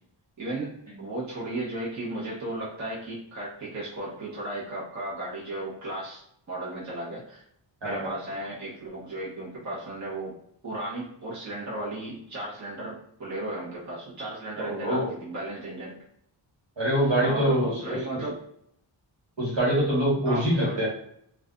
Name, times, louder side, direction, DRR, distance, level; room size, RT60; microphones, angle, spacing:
voice 1, 0.4-0.7 1.0-6.2 6.5-7.4 7.8-10.4 10.6-16.0 17.2-18.4 20.2-20.4, right 1 dB, 35° right, -7 dB, 1.0 m, -35 dB
voice 2, 7.8-8.1 14.6-15.1 16.8-17.8 19.4-20.9, right 1 dB, 60° right, -4 dB, 1.3 m, -24 dB
3.2 x 2.3 x 2.4 m, 0.72 s
wide cardioid pair, 105°, 49 cm